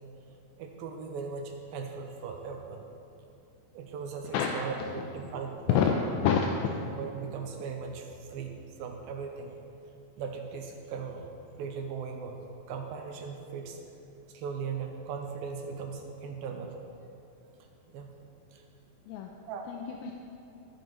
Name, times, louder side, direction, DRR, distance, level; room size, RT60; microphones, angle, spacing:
voice 1, 0.6-2.8 3.7-5.9 6.9-9.6 10.2-11.3 11.6-13.8 14.3-16.8 17.9-18.1 18.5-18.6 19.5-19.7 20.1-20.2, right 5 dB, 85° right, 3 dB, 2.4 m, -38 dB
voice 2, 5.7-6.7 19.1-19.3 19.7-20.1, left 7 dB, 85° left, 2 dB, 2.4 m, -27 dB
14.5 x 7.2 x 3.0 m, 2.8 s
omnidirectional pair, 4.3 m